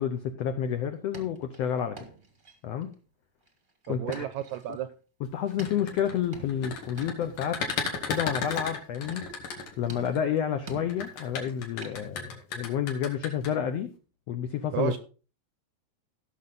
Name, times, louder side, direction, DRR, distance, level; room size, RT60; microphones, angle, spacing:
voice 1, 0.0-2.0 2.6-2.9 3.9-4.3 4.7-4.8 5.3-7.6 8.1-9.3 9.8-13.9 14.3-14.9, left 9 dB, 90° left, 8 dB, 1.4 m, -30 dB
sound 1, 0.7-0.8 1.1-2.9 3.5-4.8 5.5-7.4 7.8-7.9 8.1-8.7 9.1-9.6 9.9-11.5 11.8-12.1, right 5 dB, 40° right, 0.7 m, -47 dB
voice 2, 3.9-4.9 14.7-15.0, right 12 dB, 80° right, 10 dB, 1.7 m, -32 dB
sound 2, 5.5-10.2 10.9-13.5, left 5 dB, 70° left, 3.6 m, -34 dB
16.5 x 6.5 x 3.9 m, 0.36 s
omnidirectional pair, 4.0 m